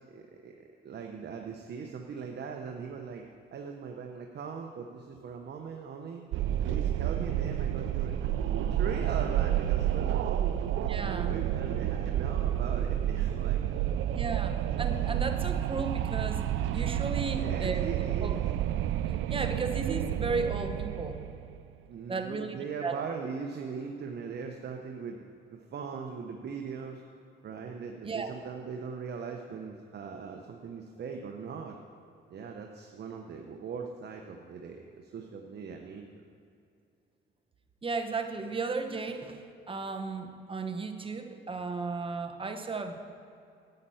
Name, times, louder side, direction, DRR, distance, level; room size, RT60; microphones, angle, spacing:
voice 1, 0.1-0.5 0.8-6.2 6.6-10.6 11.0-13.9 14.3-14.4 17.4-18.4 21.9-25.2 25.5-27.0 27.4-31.8 32.3-36.2, right 6 dB, 55° right, 3 dB, 0.9 m, -40 dB
Wind, 6.3-21.7, right 11 dB, 80° right, 0.4 m, -30 dB
voice 2, 10.9-11.4 14.1-16.4 16.7-17.9 18.2-18.4 19.3-21.2 22.1-23.0 28.0-28.3 37.8-43.0, right 4 dB, 25° right, 6 dB, 1.1 m, -35 dB
11.0 x 9.0 x 5.6 m, 2.6 s
cardioid pair, 90°, 20 cm